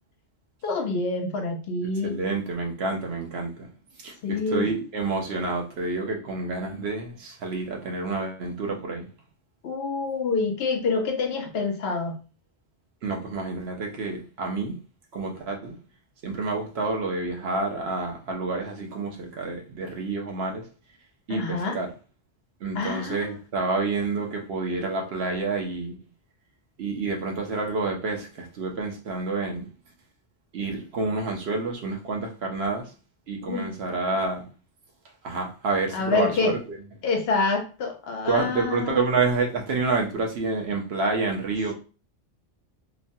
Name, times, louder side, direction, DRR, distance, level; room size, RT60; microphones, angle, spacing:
voice 1, 0.6-2.1 4.2-4.7 9.6-12.2 21.3-21.8 22.7-23.4 33.5-33.7 35.9-36.6 37.0-39.0, left 4 dB, 70° left, 4 dB, 0.8 m, -27 dB
voice 2, 2.0-3.7 4.0-9.1 13.0-14.8 15.1-15.8 16.2-20.6 21.3-21.9 22.6-26.0 26.8-29.7 30.5-32.8 33.3-34.4 35.2-36.6 38.3-41.7, right 3 dB, 70° right, 1 dB, 0.9 m, -28 dB
3.0 x 2.2 x 2.6 m, 0.35 s
omnidirectional pair, 1.1 m